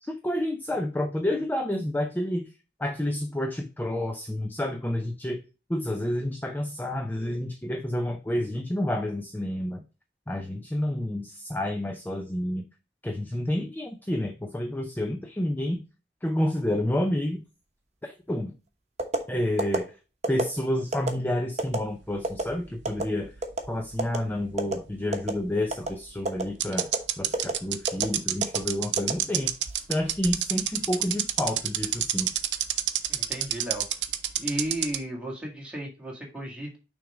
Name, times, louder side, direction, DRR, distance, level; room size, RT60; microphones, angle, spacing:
voice 1, 0.0-2.5 2.8-5.4 5.7-9.8 10.3-12.6 13.0-15.8 16.2-17.4 18.0-18.5 19.3-19.9 20.3-23.3 23.7-26.9 27.2-29.5 29.9-32.3, left 1 dB, 10° left, 4 dB, 0.5 m, -29 dB
sound 1, 19.0-19.2 19.6-19.8 20.2-20.5 20.9-21.1 21.6-21.8 22.2-22.4 22.8-23.0 23.4-23.6 24.0-24.2 24.6-24.7 25.1-25.4 25.7-25.9 26.2-26.4 26.8-27.0 27.3-27.5 27.9-28.1 28.4-28.6 29.0-29.6 30.0-30.3, right 2 dB, 40° right, 1.1 m, -27 dB
sound 2, 22.1-23.7 23.9-24.0 25.8-25.9 26.6-35.0, right 12 dB, 85° right, 0.6 m, -27 dB
voice 2, 33.1-33.8 34.4-36.8, right 1 dB, 5° right, -2 dB, 2.0 m, -34 dB
6.1 x 3.6 x 4.9 m, 0.32 s
head